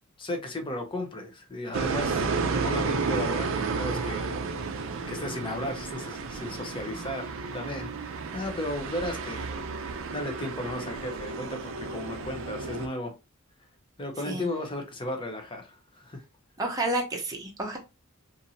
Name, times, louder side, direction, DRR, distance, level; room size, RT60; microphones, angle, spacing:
voice 1, 0.2-2.2 2.5-4.3 5.1-7.9 8.3-9.5 10.1-13.1 14.0-16.2, left 1 dB, 25° left, 0.7 m, -35 dB
sound 1, 1.7-12.9, right 4 dB, 65° right, 0.4 m, -32 dB
voice 2, 16.6-17.8, right 1 dB, 15° right, 0.6 m, -30 dB
2.6 x 2.6 x 2.7 m
head